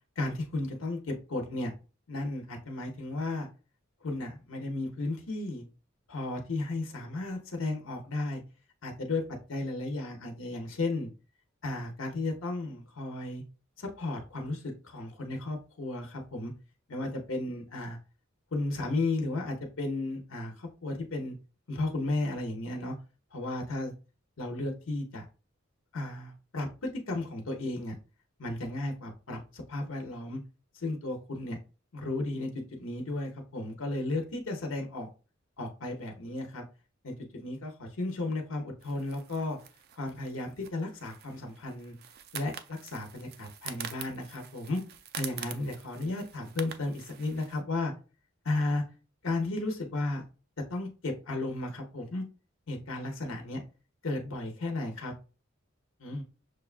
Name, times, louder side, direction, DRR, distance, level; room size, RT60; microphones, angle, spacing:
voice 1, 0.2-1.7 2.1-3.5 4.0-5.6 6.1-8.4 8.8-9.2 9.5-11.1 11.6-13.4 13.8-16.5 16.9-18.0 18.5-21.3 21.7-22.9 23.3-23.9 24.4-25.2 25.9-27.9 28.4-30.4 30.8-31.6 31.9-32.5 32.8-35.1 35.6-36.6 37.0-39.6 40.0-41.9 42.3-44.8 45.1-47.9 48.4-48.8 49.2-50.2 50.7-52.2 52.7-53.6 54.0-55.1 56.0-56.2, left 2 dB, 75° left, 2 dB, 0.8 m, -34 dB
sound 1, 38.8-47.6, right 8 dB, 50° right, 0.4 m, -46 dB
6.2 x 2.2 x 2.4 m, 0.34 s
head